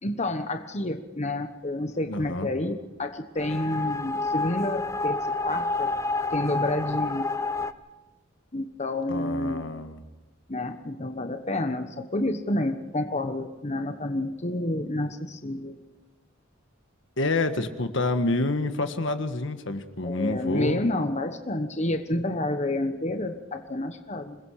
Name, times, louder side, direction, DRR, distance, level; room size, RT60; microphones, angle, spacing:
voice 1, 0.0-5.2 5.4-5.9 6.3-7.3 8.5-9.7 10.5-15.8 20.0-24.4, left 1 dB, 35° left, 7 dB, 1.2 m, -29 dB
voice 2, 2.1-2.5 9.1-10.0 17.2-20.8, left 2 dB, 65° left, 8 dB, 1.6 m, -28 dB
sound 1, 3.4-7.7, left 3 dB, 15° left, 0.8 m, -29 dB
27.0 x 21.5 x 5.0 m, 1.1 s
head